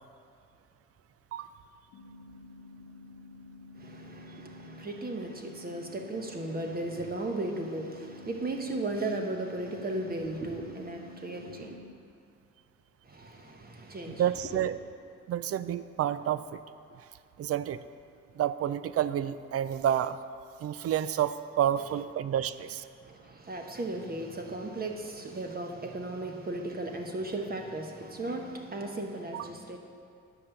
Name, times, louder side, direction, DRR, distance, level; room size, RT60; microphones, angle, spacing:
sound 1, 1.9-11.9, left 3 dB, 65° left, 0.9 m, -50 dB
voice 1, 3.8-11.8 13.0-14.7 23.0-29.8, right 2 dB, 30° right, 3 dB, 1.2 m, -36 dB
voice 2, 14.1-14.8 15.3-16.6 17.4-17.8 18.4-20.2 20.6-22.8 29.3-29.5, right 10 dB, 50° right, 14 dB, 0.4 m, -29 dB
9.5 x 6.0 x 6.7 m, 2.4 s
cardioid pair, 90°, 30 cm